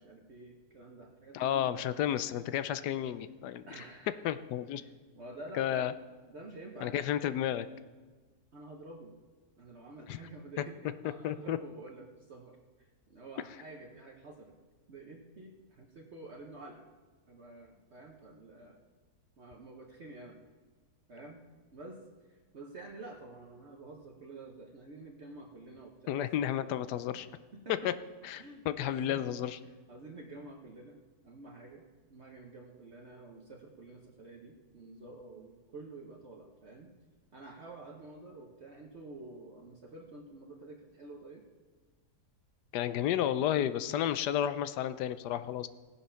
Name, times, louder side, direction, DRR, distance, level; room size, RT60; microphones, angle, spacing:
voice 1, 0.0-1.9 3.7-4.2 4.7-5.9 6.3-7.0 8.5-9.1 9.6-14.6 14.9-16.9 17.3-18.8 19.4-20.4 21.1-21.4 21.7-22.0 22.3-26.6 27.1-27.9 28.3-29.3 29.6-36.9 37.3-41.4, right 2 dB, 50° right, 1 dB, 1.1 m, -49 dB
voice 2, 1.3-3.6 4.2-4.8 5.5-5.9 6.8-7.7 10.1-10.2 11.2-11.6 26.1-27.3 27.8-27.9 28.2-29.6 42.7-45.7, left 11 dB, 85° left, 13 dB, 1.2 m, -32 dB
16.5 x 7.3 x 5.7 m, 1.4 s
omnidirectional pair, 1.8 m